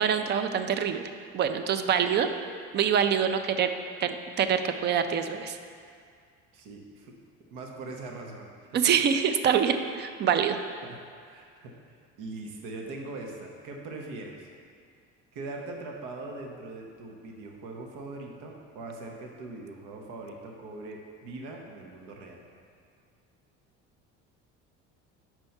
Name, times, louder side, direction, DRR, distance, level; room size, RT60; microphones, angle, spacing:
voice 1, 0.0-2.3 2.7-3.7 4.0-5.6 8.7-10.6, right 7 dB, 35° right, 8 dB, 0.4 m, -25 dB
voice 2, 6.5-7.1 7.5-9.0 10.8-14.5 15.3-22.4, right 2 dB, 80° right, 1 dB, 0.9 m, -41 dB
5.3 x 4.5 x 5.7 m, 2.2 s
cardioid pair, 125°, 30 cm